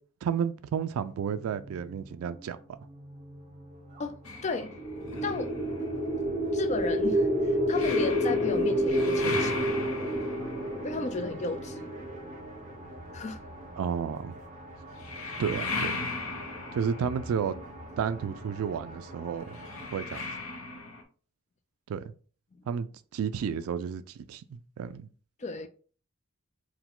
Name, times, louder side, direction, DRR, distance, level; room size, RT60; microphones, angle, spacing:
voice 1, 0.2-2.6 13.8-14.3 15.4-16.1 16.7-17.5 18.0-19.6 19.9-20.2 21.9-22.0 22.7-25.1, right 7 dB, 75° right, 0.3 m, -32 dB
sound 1, 0.9-19.8, right 1 dB, 35° right, 0.9 m, -47 dB
sound 2, 4.3-12.7 14.9-21.0, left 3 dB, 70° left, 0.8 m, -39 dB
voice 2, 4.4-4.8 5.2-5.5 6.5-9.6 10.8-11.9 13.1-13.4 25.4-25.7, left 3 dB, 30° left, 0.4 m, -33 dB
sound 3, 4.7-12.8, equal, 15° left, 0.9 m, -29 dB
4.6 x 2.2 x 3.7 m
head